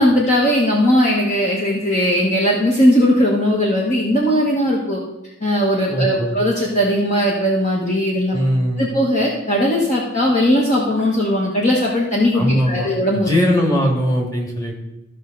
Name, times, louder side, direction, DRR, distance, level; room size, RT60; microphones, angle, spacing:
voice 1, 0.0-5.0 5.4-8.4 8.8-13.3, equal, 35° left, -3 dB, 1.3 m, -18 dB
voice 2, 5.9-6.4 8.3-8.9 12.3-14.8, equal, 20° left, 0 dB, 2.0 m, -20 dB
14.5 x 5.5 x 3.9 m, 0.92 s
head